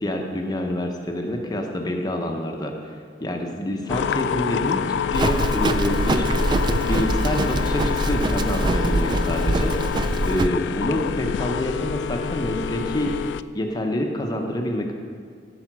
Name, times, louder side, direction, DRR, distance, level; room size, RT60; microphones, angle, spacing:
voice 1, 0.0-2.9 3.2-4.8 5.1-6.3 6.9-9.7 10.3-13.1 13.5-14.9, left 1 dB, 25° left, 2 dB, 0.8 m, -27 dB
sound 1, 3.9-13.4, left 7 dB, 80° left, 0.3 m, -27 dB
Livestock farm animals working animals, 5.1-10.5, right 2 dB, 25° right, 0.3 m, -24 dB
13.5 x 5.0 x 6.1 m, 2.1 s
head